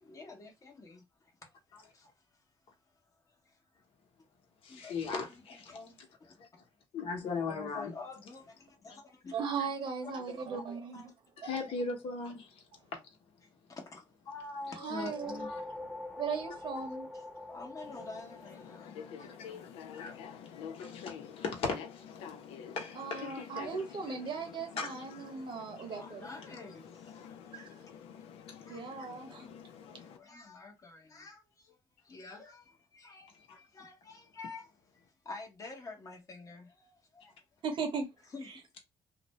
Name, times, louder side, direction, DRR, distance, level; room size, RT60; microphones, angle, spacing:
voice 1, 0.0-1.5 1.8-2.1 3.3-3.6 4.7-6.1 7.5-9.4 10.0-10.2 10.9-11.1 13.7-15.0 17.1-19.6 25.9-27.1 27.5-27.7 28.7-29.6 29.9-31.8 32.0-37.3 38.3-38.5, left 3 dB, 35° left, 0.9 m, -49 dB
voice 2, 4.6-5.6 6.9-7.9 11.4-12.5 14.9-15.6 19.4-19.5 19.9-20.1 20.7-21.1 21.4-21.8 22.8-23.5 24.8-24.9 33.5-33.6, left 4 dB, 75° left, 1.0 m, -37 dB
voice 3, 9.3-11.1 14.8-15.5 16.2-17.1 22.9-26.3 27.5-27.7 28.7-29.5 37.6-38.1 38.4-38.5, right 5 dB, 55° right, 0.8 m, -37 dB
sound 1, 14.9-19.5, left 2 dB, ahead, 0.8 m, -44 dB
sound 2, 17.8-30.2, left 8 dB, 90° left, 0.4 m, -48 dB
2.5 x 2.1 x 3.0 m
cardioid pair, 100°, 10 cm